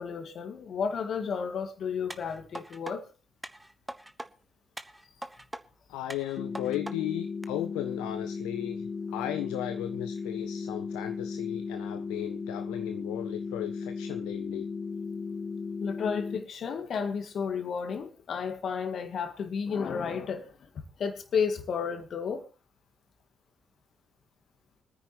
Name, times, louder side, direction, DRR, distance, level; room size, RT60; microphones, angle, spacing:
voice 1, 0.0-3.1 15.8-20.5 21.0-22.5, left 6 dB, 55° left, 2.0 m, -32 dB
sound 1, 2.1-3.0 3.4-4.3 4.8-5.6 6.1-7.0 7.4-7.5, right 1 dB, 10° right, 1.1 m, -41 dB
voice 2, 5.9-14.7, left 14 dB, 70° left, 0.6 m, -36 dB
sound 2, 6.4-16.4, left 5 dB, 35° left, 0.9 m, -36 dB
25.5 x 9.6 x 3.0 m
figure-of-eight pair, 40°, 0 cm